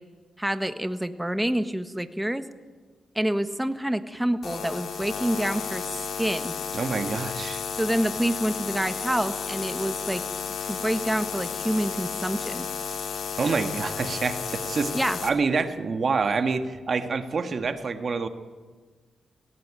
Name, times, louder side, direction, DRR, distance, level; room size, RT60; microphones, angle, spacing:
voice 1, 0.4-2.5 3.1-5.9 6.2-6.6 7.7-10.2 10.7-12.7 14.9-15.2, right 1 dB, 5° right, 9 dB, 1.5 m, -27 dB
sound 1, 4.4-15.3, left 6 dB, 75° left, 2.3 m, -33 dB
voice 2, 6.7-7.6 13.3-14.9 15.2-18.3, right 4 dB, 55° right, 7 dB, 1.8 m, -27 dB
17.5 x 17.5 x 9.1 m, 1.4 s
cardioid pair, 65°, 0 cm